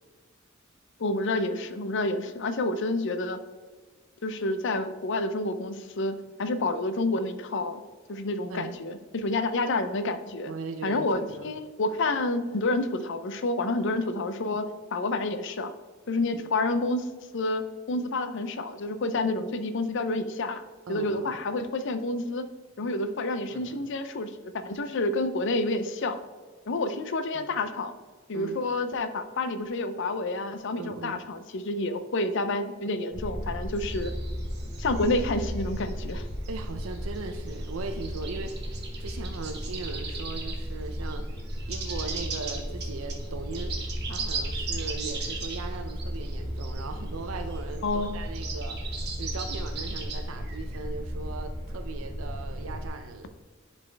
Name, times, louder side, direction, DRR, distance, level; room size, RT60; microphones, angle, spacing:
voice 1, 1.0-3.4 4.2-7.8 8.1-10.5 10.8-15.7 16.1-17.1 17.3-17.6 17.9-20.6 20.9-22.5 22.8-26.2 26.7-28.0 28.3-34.1 34.8-36.3 47.8-48.1, left 2 dB, 60° left, 10 dB, 0.6 m, -29 dB
voice 2, 10.5-11.5 20.9-21.4 23.5-23.8 27.3-27.5 28.3-28.6 30.8-31.3 36.5-41.2 41.7-53.3, right 3 dB, 75° right, 6 dB, 0.5 m, -39 dB
sound 1, 33.1-52.9, equal, 30° left, 1.9 m, -35 dB
sound 2, 33.7-36.2 36.4-40.7 40.9-46.8 47.1-47.2 47.4-50.8, right 5 dB, 55° right, 1.5 m, -39 dB
10.5 x 4.2 x 3.4 m, 1.5 s
head